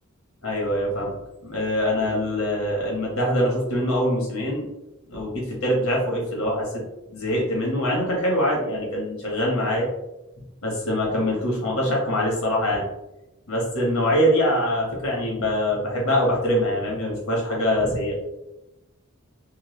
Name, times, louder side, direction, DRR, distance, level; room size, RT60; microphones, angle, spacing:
voice 1, 0.4-4.7 5.1-6.7 7.1-9.9 10.6-12.8 13.5-18.1, equal, 70° left, -2 dB, 1.2 m, -24 dB
3.0 x 2.2 x 3.1 m, 0.94 s
head